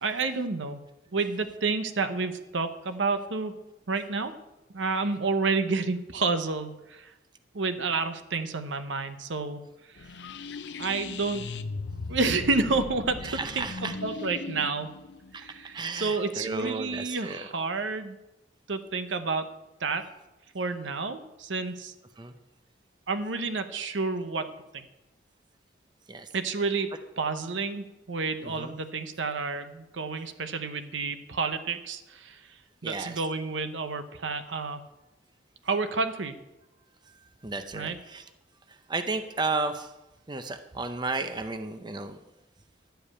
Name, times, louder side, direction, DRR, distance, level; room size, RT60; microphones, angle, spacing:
voice 1, 0.0-0.8 1.1-3.5 3.9-4.3 4.7-7.1 7.5-9.6 10.8-11.5 12.1-13.2 13.6-14.9 15.3-18.2 18.7-19.5 19.8-20.0 20.5-21.9 23.1-24.8 26.3-32.4 32.8-34.8 35.6-36.4 37.7-38.0, right 4 dB, 85° right, 9 dB, 0.8 m, -30 dB
sound 1, 10.0-16.7, left 4 dB, 65° left, 0.5 m, -39 dB
voice 2, 13.2-13.9 15.3-15.4 15.7-17.5 22.2-22.3 26.1-26.3 28.4-28.7 32.8-33.2 37.4-38.2 38.9-39.9 40.3-42.2, right 3 dB, 25° right, 8 dB, 0.6 m, -33 dB
11.5 x 5.2 x 8.6 m, 1.0 s
head